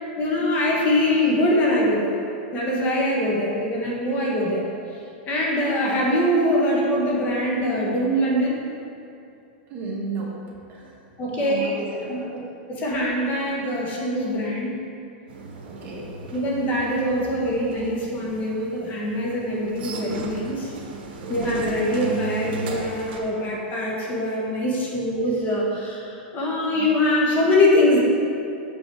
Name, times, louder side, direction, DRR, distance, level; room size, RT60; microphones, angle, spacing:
voice 1, 0.2-2.1 2.5-4.7 5.3-8.6 11.2-11.7 12.1-12.4 12.7-14.7 16.3-20.7 21.3-28.0, left 1 dB, 30° left, -3 dB, 1.4 m, -23 dB
voice 2, 9.7-11.0 11.3-12.4 15.6-16.1, right 3 dB, 30° right, -4 dB, 1.5 m, -34 dB
sound 1, 15.3-23.2, right 3 dB, 70° right, 1.2 m, -37 dB
7.0 x 5.3 x 4.7 m, 2.6 s
supercardioid pair, 140°, 6 cm